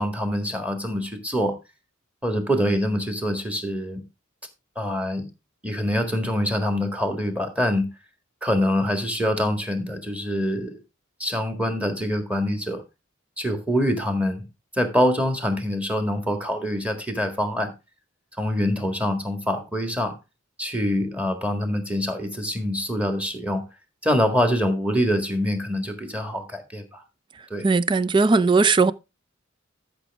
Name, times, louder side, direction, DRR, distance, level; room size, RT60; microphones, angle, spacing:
voice 1, 0.0-1.6 2.2-4.0 4.7-5.3 5.6-7.9 8.4-10.8 11.2-12.8 13.4-14.5 14.7-17.7 18.4-20.1 20.6-23.6 24.0-27.0 27.5-27.7, equal, 5° right, 1.7 m, -25 dB
voice 2, 27.6-28.9, right 4 dB, 25° right, 0.4 m, -18 dB
13.5 x 6.1 x 3.5 m
head